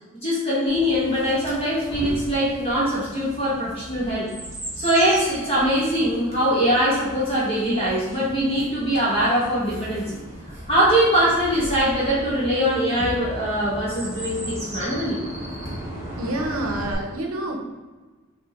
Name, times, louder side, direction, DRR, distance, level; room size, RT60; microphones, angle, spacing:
voice 1, 0.2-4.3 4.8-10.2 10.7-15.2, equal, 30° left, -9 dB, 1.4 m, -22 dB
Chirp tweet, 0.7-16.9, right 1 dB, 15° right, 1.2 m, -37 dB
voice 2, 16.2-17.6, right 1 dB, 80° right, 1 dB, 0.7 m, -28 dB
5.5 x 2.7 x 2.9 m, 1.3 s
head